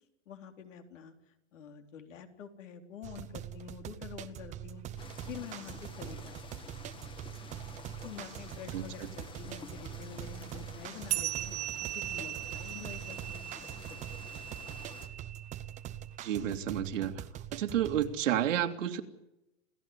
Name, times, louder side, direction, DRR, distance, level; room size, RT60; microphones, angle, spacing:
voice 1, 0.3-1.1 1.5-6.6 7.7-13.5 13.9-14.0, left 8 dB, 80° left, 5 dB, 4.1 m, -47 dB
sound 1, 3.0-18.2, right 12 dB, 20° right, 1.0 m, -44 dB
sound 2, 5.0-15.1, left 3 dB, 15° left, 1.8 m, -50 dB
sound 3, 11.1-16.0, right 14 dB, 60° right, 1.7 m, -39 dB
voice 2, 16.2-17.2 17.5-19.0, right 10 dB, 80° right, 5 dB, 2.6 m, -30 dB
28.0 x 16.0 x 9.8 m, 0.92 s
supercardioid pair, 155°, 37 cm